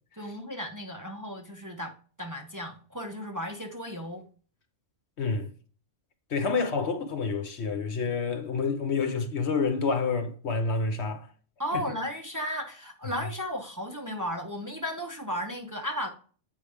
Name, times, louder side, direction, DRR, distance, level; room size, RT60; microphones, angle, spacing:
voice 1, 0.1-4.2 6.4-6.5 11.6-16.1, equal, 15° right, 0.9 m, -35 dB
voice 2, 5.2-5.5 6.3-11.3 11.7-11.8, left 4 dB, 65° left, 1.2 m, -28 dB
8.0 x 5.4 x 3.5 m
omnidirectional pair, 1.2 m